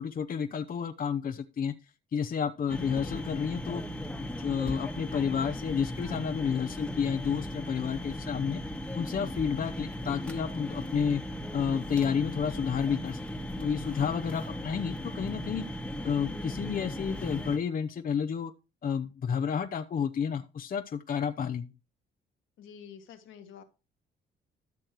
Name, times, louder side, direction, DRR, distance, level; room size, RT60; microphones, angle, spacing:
voice 1, 0.0-1.7 2.1-3.8 4.2-8.6 8.9-11.2 11.5-13.3 13.6-18.5 18.8-21.7, left 7 dB, 45° left, 8 dB, 0.8 m, -31 dB
sound 1, 2.7-17.6, left 1 dB, 5° left, 1.3 m, -37 dB
voice 2, 22.6-23.6, left 7 dB, 80° left, 6 dB, 1.8 m, -48 dB
13.0 x 6.4 x 2.9 m, 0.30 s
cardioid pair, 90°, 20 cm